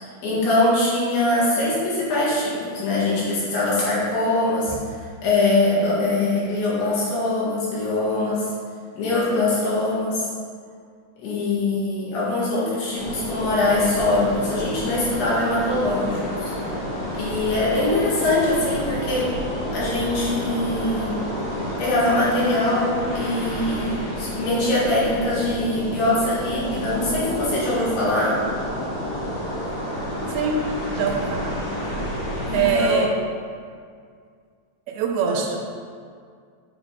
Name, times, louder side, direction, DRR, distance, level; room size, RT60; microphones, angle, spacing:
voice 1, 0.2-4.7 5.2-8.4 9.0-10.3 11.2-16.5 17.1-19.3 19.7-21.2 21.8-28.4 32.5-33.0, left 2 dB, 85° left, -8 dB, 4.0 m, -22 dB
sound 1, 13.0-32.7, equal, 40° left, 1.8 m, -30 dB
voice 2, 30.3-30.7 30.9-31.6 31.8-32.1 32.5-33.1 34.9-35.6, right 5 dB, 85° right, 2 dB, 2.5 m, -23 dB
8.1 x 4.1 x 4.9 m, 2.1 s
omnidirectional pair, 4.5 m